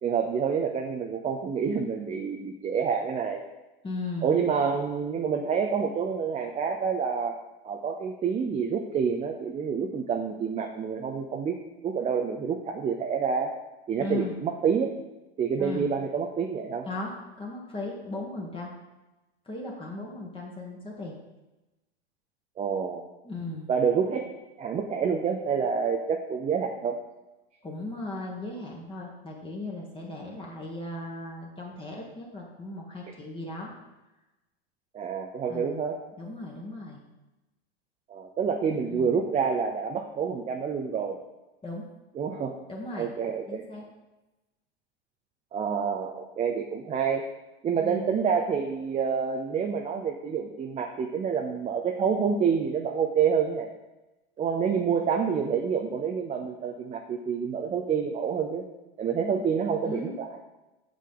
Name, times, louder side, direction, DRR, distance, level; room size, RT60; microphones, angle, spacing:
voice 1, 0.0-3.4 4.2-7.4 7.6-11.6 11.8-13.5 13.9-15.0 15.4-16.9 22.6-23.1 23.7-27.0 34.9-36.0 38.1-41.2 42.2-42.6 43.0-43.7 45.5-47.3 47.6-53.7 54.4-58.6 59.0-60.4, right 6 dB, 20° right, 3 dB, 0.6 m, -28 dB
voice 2, 3.8-4.4 14.0-14.4 15.6-15.9 16.8-18.7 19.4-21.1 23.2-23.7 27.6-33.7 35.5-35.8 36.2-37.0 38.9-39.3 41.6-41.8 42.7-43.1 43.5-43.8 47.8-48.2 59.2-59.4 59.8-60.2, left 2 dB, 15° left, -2 dB, 1.6 m, -37 dB
8.3 x 6.5 x 3.9 m, 1.0 s
hypercardioid pair, 110°, 32 cm